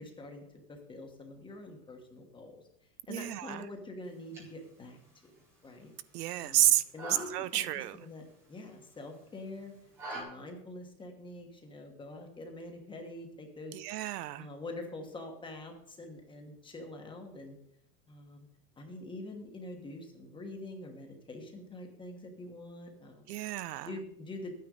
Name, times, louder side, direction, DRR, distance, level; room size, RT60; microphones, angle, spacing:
voice 1, 0.0-2.6 3.1-5.0 5.6-5.9 6.4-7.7 7.9-9.7 10.1-13.8 14.4-17.6 18.1-18.5 18.8-23.2 23.8-24.5, left 2 dB, 10° left, 3 dB, 1.2 m, -45 dB
voice 2, 3.1-3.6 6.1-6.8 7.3-8.0 13.7-14.5 23.3-24.0, right 14 dB, 70° right, 15 dB, 0.7 m, -30 dB
sound 1, 4.0-10.2, right 1 dB, 5° right, 0.3 m, -48 dB
11.0 x 9.4 x 3.8 m, 0.77 s
supercardioid pair, 160°, 48 cm